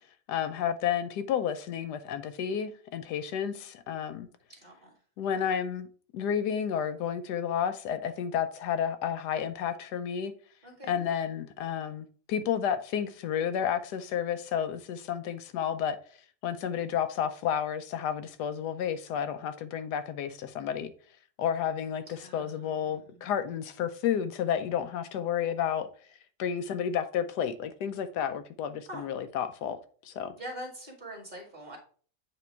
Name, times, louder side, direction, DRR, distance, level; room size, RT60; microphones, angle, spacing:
voice 1, 0.3-4.3 5.2-5.9 6.1-10.3 10.9-16.0 16.4-20.9 21.4-25.9 26.4-29.8 30.0-30.3, left 8 dB, 80° left, 1.2 m, -31 dB
voice 2, 4.5-5.0 5.3-5.5 10.6-11.0 22.2-23.5 28.9-29.1 30.3-31.8, right 1 dB, 25° right, 2.0 m, -44 dB
8.2 x 3.0 x 4.5 m
omnidirectional pair, 1.7 m